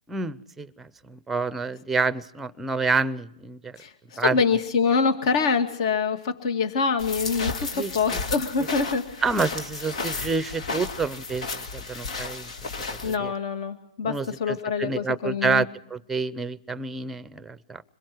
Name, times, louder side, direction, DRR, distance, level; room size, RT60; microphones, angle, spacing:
voice 1, 0.1-3.8 4.2-4.4 7.7-8.2 9.2-12.5 12.8-13.3 14.0-17.8, right 4 dB, 5° right, 17 dB, 0.7 m, -28 dB
voice 2, 3.8-9.2 13.0-15.6, left 5 dB, 55° left, 8 dB, 2.2 m, -25 dB
sound 1, 7.0-13.1, left 3 dB, 70° left, 2.4 m, -33 dB
26.5 x 22.0 x 4.7 m, 0.77 s
hypercardioid pair, 135°, 4 cm